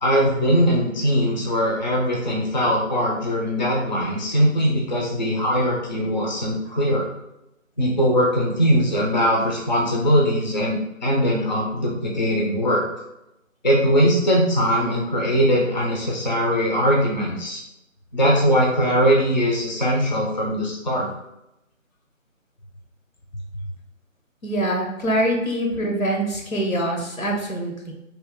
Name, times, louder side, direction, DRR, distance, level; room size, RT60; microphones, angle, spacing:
voice 1, 0.0-7.1 7.8-12.8 13.6-17.6 18.1-21.1, equal, 35° left, -3 dB, 0.6 m, -21 dB
voice 2, 24.4-27.9, right 1 dB, 90° left, 0 dB, 1.1 m, -24 dB
3.2 x 2.3 x 3.6 m, 0.87 s
figure-of-eight pair, 155°, 40 cm